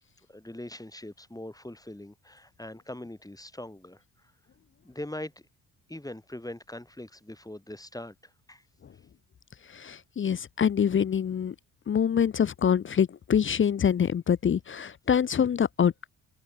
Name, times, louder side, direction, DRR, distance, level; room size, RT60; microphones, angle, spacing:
voice 1, 0.3-4.0 4.8-5.5 5.9-8.6, left 1 dB, 5° left, 3.7 m, -41 dB
voice 2, 9.8-11.5 11.9-15.9, left 8 dB, 25° left, 0.6 m, -25 dB
hypercardioid pair, 45°, 49 cm